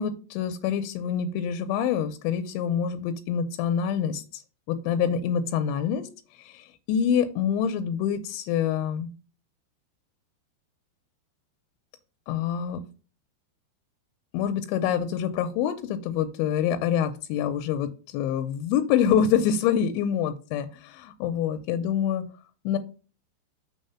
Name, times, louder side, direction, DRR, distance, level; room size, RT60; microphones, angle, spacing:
voice 1, 0.0-4.4 4.7-6.0 6.4-9.1 12.3-12.8 14.3-20.7 20.9-22.2 22.7-22.8, left 8 dB, 90° left, 8 dB, 3.0 m, -26 dB
6.4 x 3.6 x 5.5 m, 0.35 s
omnidirectional pair, 5.2 m